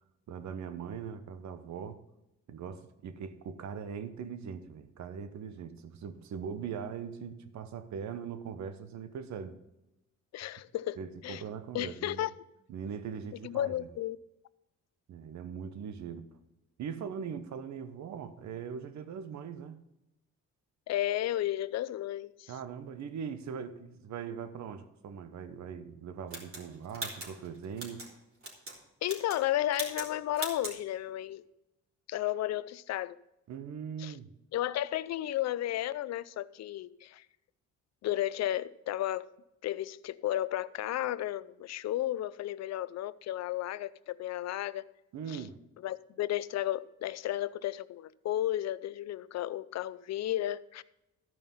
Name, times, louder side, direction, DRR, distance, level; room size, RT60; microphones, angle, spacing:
voice 1, 0.3-2.0 2.5-9.6 11.0-12.3 12.7-13.8 15.1-16.3 16.8-19.8 22.5-28.0 33.5-34.3 45.1-45.6, right 7 dB, 65° right, 1.0 m, -41 dB
voice 2, 10.3-11.4 11.7-12.3 13.4-14.2 20.9-22.5 29.0-31.5 32.1-33.2 34.0-34.1 34.5-37.2 38.0-39.3 39.6-44.9 45.3-45.4 45.8-50.8, left 13 dB, 60° left, 0.5 m, -33 dB
sound 1, 26.3-28.1 28.4-28.8 29.0-29.4 29.7-30.1 30.3-30.8, right 2 dB, 45° right, 3.3 m, -40 dB
13.5 x 5.5 x 5.4 m
cardioid pair, 90°, 30 cm